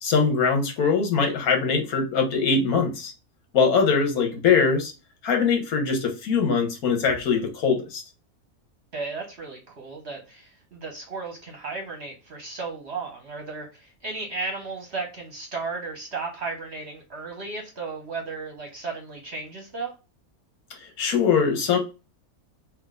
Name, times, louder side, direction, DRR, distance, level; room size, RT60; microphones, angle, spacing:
voice 1, 0.0-3.1 3.5-4.9 5.2-8.0 21.0-21.8, left 5 dB, 75° left, 3 dB, 1.5 m, -22 dB
voice 2, 8.9-19.9, right 4 dB, 55° right, 1 dB, 1.0 m, -34 dB
3.6 x 2.8 x 3.6 m, 0.30 s
omnidirectional pair, 1.6 m